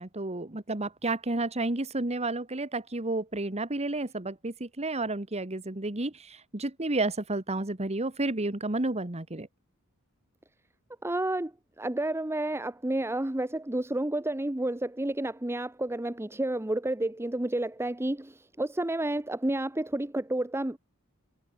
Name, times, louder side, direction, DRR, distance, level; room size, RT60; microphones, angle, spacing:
voice 1, 0.0-9.5, right 2 dB, 30° right, 1.6 m, -31 dB
voice 2, 11.0-20.8, right 1 dB, 10° right, 0.8 m, -30 dB
head